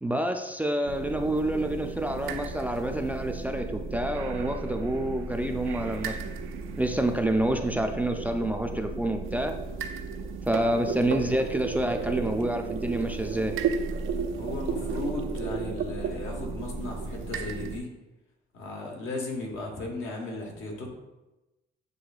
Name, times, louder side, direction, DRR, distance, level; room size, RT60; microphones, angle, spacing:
voice 1, 0.0-6.2 6.8-9.5 10.5-13.6, right 1 dB, 10° right, 4 dB, 0.3 m, -28 dB
sound 1, 0.9-17.8, right 5 dB, 90° right, 0.4 m, -34 dB
voice 2, 14.4-17.9 18.5-20.9, left 2 dB, 80° left, 0 dB, 1.2 m, -36 dB
7.7 x 2.7 x 2.4 m, 1.0 s
cardioid pair, 90°, 20 cm